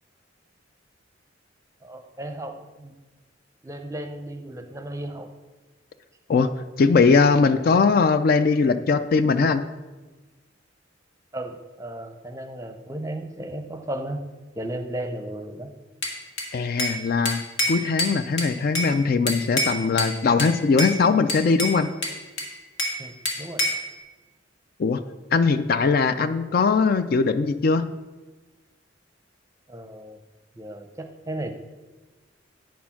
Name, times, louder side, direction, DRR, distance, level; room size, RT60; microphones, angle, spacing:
voice 1, 1.8-2.9 3.6-5.3 11.3-14.2 14.5-15.7 23.0-23.7 29.7-30.2 30.6-31.5, right 1 dB, 15° right, 6 dB, 0.6 m, -35 dB
voice 2, 6.8-9.7 16.5-17.4 17.7-21.9 24.8-25.0 25.3-27.8, left 4 dB, 50° left, 11 dB, 0.4 m, -20 dB
Bell / Glass, 16.0-17.0 17.3-18.9 19.3-20.1 20.4-21.0 21.3-23.0 23.3-23.9, left 1 dB, 70° left, 1.7 m, -27 dB
9.3 x 4.3 x 5.8 m, 1.2 s
head